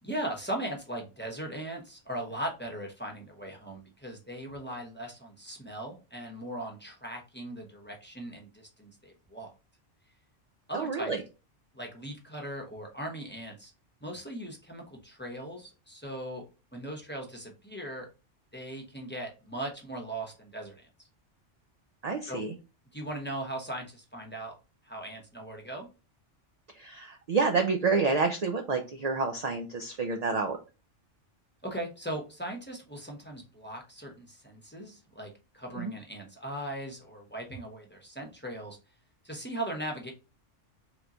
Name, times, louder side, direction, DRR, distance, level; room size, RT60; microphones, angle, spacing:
voice 1, 0.0-9.5 10.7-11.1 11.7-13.7 14.0-16.4 16.7-18.1 18.5-20.9 22.3-22.4 22.9-24.5 24.8-25.9 31.6-35.3 35.5-38.8 39.2-40.1, right 1 dB, 10° left, 0 dB, 0.8 m, -39 dB
voice 2, 10.7-11.2 22.0-22.5 26.8-30.6 35.8-35.9, right 4 dB, 50° right, 4 dB, 0.5 m, -28 dB
3.4 x 3.0 x 3.8 m, 0.31 s
omnidirectional pair, 1.2 m